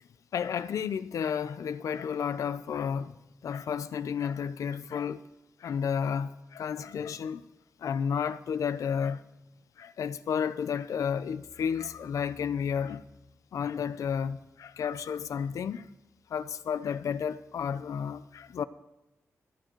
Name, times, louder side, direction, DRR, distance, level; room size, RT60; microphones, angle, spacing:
voice 1, 0.3-3.2 3.4-5.2 5.6-7.4 7.8-9.3 9.8-13.0 13.5-15.9 16.3-18.6, left 7 dB, 85° left, 0.7 m, -32 dB
24.5 x 9.2 x 4.6 m
wide cardioid pair, 110°, 5 cm